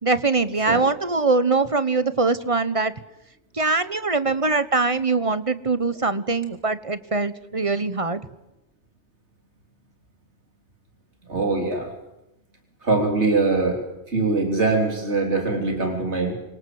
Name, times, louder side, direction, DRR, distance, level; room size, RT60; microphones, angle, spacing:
voice 1, 0.0-2.9 3.5-8.2, right 3 dB, 30° right, 13 dB, 1.2 m, -22 dB
voice 2, 11.3-11.9 12.8-16.3, right 3 dB, 80° right, 3 dB, 3.9 m, -23 dB
28.5 x 23.5 x 7.9 m, 0.92 s
omnidirectional pair, 1.1 m